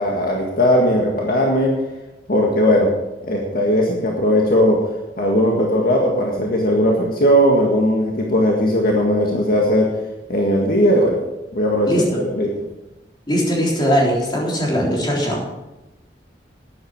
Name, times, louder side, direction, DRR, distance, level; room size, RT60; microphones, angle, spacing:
voice 1, 0.0-1.7 2.3-2.9 3.3-4.8 5.2-9.9 10.3-11.2 11.5-12.5, equal, 55° left, -1 dB, 1.8 m, -18 dB
voice 2, 11.9-12.2 13.3-15.4, equal, 25° left, -3 dB, 3.8 m, -20 dB
12.5 x 10.5 x 4.9 m, 1.0 s
head